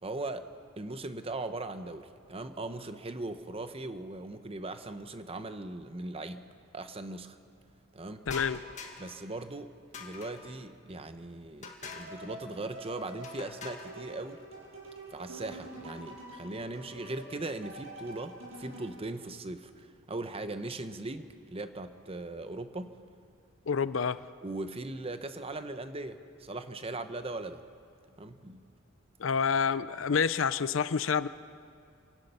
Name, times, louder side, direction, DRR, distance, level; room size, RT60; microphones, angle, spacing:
voice 1, 0.0-0.5 0.8-6.5 6.7-7.4 7.9-8.2 9.0-9.7 10.0-14.4 15.1-23.0 24.4-27.6 28.2-28.6, right 2 dB, 30° right, 9 dB, 0.9 m, -39 dB
voice 2, 8.3-8.6 23.7-24.2 29.2-31.3, left 6 dB, 65° left, 15 dB, 0.6 m, -28 dB
sound 1, 8.3-9.2 9.9-10.6 11.6-12.2 13.2-14.0, left 5 dB, 35° left, 1.9 m, -44 dB
sound 2, 11.8-19.0, right 1 dB, 85° right, 7.1 m, -47 dB
28.0 x 17.5 x 5.6 m, 2.4 s
head